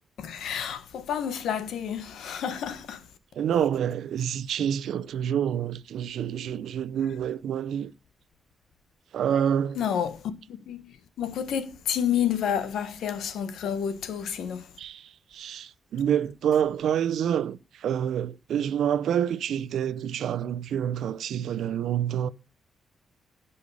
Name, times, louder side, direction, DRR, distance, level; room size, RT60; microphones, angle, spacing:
voice 1, 0.2-3.0 9.8-10.9 11.2-14.7, left 8 dB, 90° left, 1.4 m, -30 dB
voice 2, 3.3-7.9 9.1-9.8 14.8-22.3, right 9 dB, 85° right, 0.7 m, -27 dB
16.5 x 5.6 x 4.9 m
wide cardioid pair, 140°, 0 cm